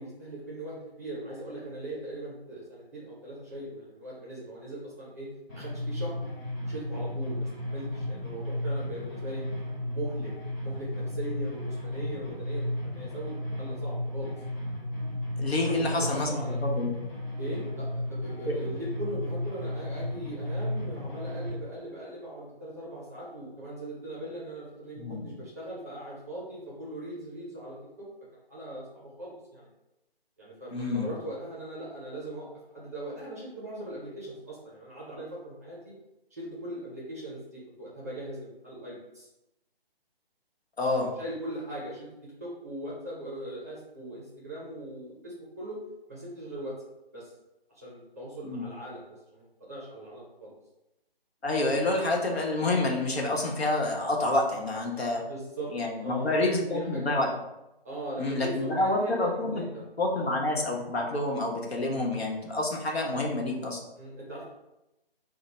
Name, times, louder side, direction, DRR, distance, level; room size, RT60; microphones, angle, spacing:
voice 1, 0.0-6.1 6.6-9.4 9.8-10.3 10.6-14.3 15.6-16.6 17.4-28.1 28.5-29.7 30.4-32.5 32.7-35.9 36.3-39.3 40.9-45.8 46.1-46.7 47.1-47.3 47.7-50.5 55.3-57.1 57.8-60.3 64.0-64.5, right 1 dB, 15° right, -6 dB, 0.5 m, -40 dB
sound 1, 5.5-21.5, left 1 dB, 10° left, 0.9 m, -34 dB
voice 2, 15.4-16.9 18.4-18.6 24.9-25.3 30.7-31.1 40.8-41.1 48.4-48.7 51.4-55.2 55.7-57.3 58.2-59.7 60.0-63.8, left 2 dB, 85° left, -1 dB, 1.0 m, -28 dB
3.0 x 2.1 x 4.0 m, 0.93 s
figure-of-eight pair, 150°, 30 cm